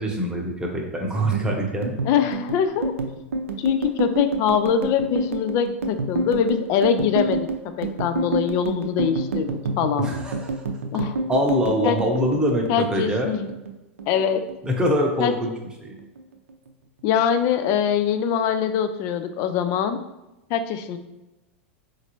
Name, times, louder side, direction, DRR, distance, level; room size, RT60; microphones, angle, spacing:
voice 1, 0.0-2.0 10.0-10.5 11.3-13.3 14.6-15.5 15.8-15.9, equal, 10° right, 0 dB, 0.8 m, -24 dB
sound 1, 1.2-13.7 14.0-15.0 15.3-15.7 16.0-16.7, right 3 dB, 90° right, 0.4 m, -29 dB
voice 2, 2.0-2.9 3.6-7.5 7.8-10.1 10.9-11.1 11.8-12.0 12.7-13.5 14.1-14.4 15.2-15.3 17.0-20.0 20.5-21.0, left 8 dB, 50° left, 9 dB, 0.4 m, -23 dB
4.0 x 2.5 x 3.0 m, 0.98 s
hypercardioid pair, 105°, 7 cm